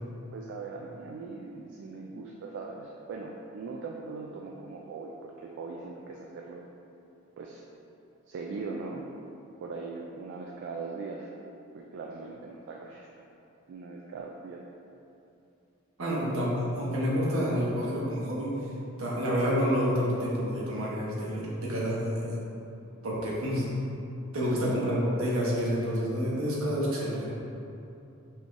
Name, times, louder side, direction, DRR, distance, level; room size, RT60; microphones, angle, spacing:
voice 1, 0.3-6.6 7.4-7.6 8.3-9.1 9.6-11.3 11.7-13.1 13.7-14.6 24.6-25.0, right 4 dB, 60° right, -1 dB, 0.3 m, -40 dB
voice 2, 16.0-18.5 19.0-22.4 23.0-23.7 24.3-27.3, equal, 80° right, -5 dB, 1.0 m, -28 dB
5.3 x 3.3 x 2.5 m, 2.8 s
head